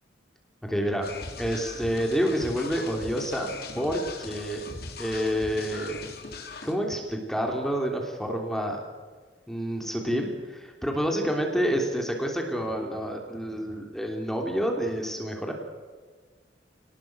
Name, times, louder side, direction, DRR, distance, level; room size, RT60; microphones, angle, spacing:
voice 1, 0.6-1.1 1.4-4.6 5.0-6.0 6.6-8.8 9.5-15.5, equal, ahead, 2 dB, 3.2 m, -28 dB
sound 1, 1.0-6.7, left 3 dB, 55° left, 3.8 m, -40 dB
28.5 x 19.5 x 8.0 m, 1.5 s
head